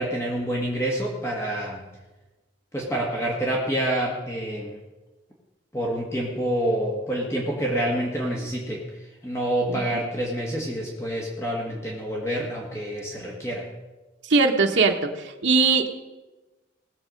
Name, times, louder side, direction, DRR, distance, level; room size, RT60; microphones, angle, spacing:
voice 1, 0.0-1.8 2.7-4.8 5.7-13.7, right 1 dB, 15° left, -3 dB, 1.7 m, -27 dB
voice 2, 14.3-15.9, right 4 dB, 70° right, 3 dB, 1.2 m, -20 dB
19.0 x 7.4 x 5.3 m, 1.1 s
head